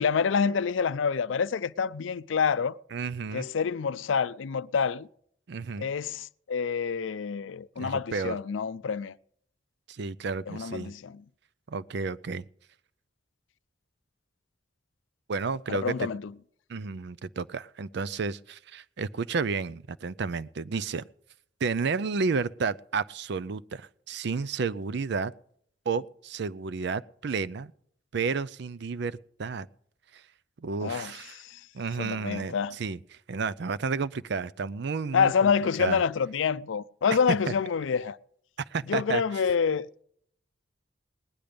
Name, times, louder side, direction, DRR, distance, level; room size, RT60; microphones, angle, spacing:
voice 1, 0.0-2.8 3.3-5.1 5.8-9.1 10.5-11.2 15.7-16.3 30.8-31.6 32.0-32.7 35.1-38.2 38.9-39.9, left 6 dB, 85° left, 0.4 m, -27 dB
voice 2, 2.9-3.5 5.5-5.9 7.8-8.4 9.9-10.9 11.7-12.4 15.3-16.1 16.7-21.0 21.6-25.3 25.9-27.7 28.1-29.7 30.1-30.2 30.6-31.4 31.7-33.0 33.3-35.5 35.8-36.0 38.7-39.2, right 4 dB, 60° right, 0.5 m, -31 dB
19.0 x 10.5 x 5.2 m
head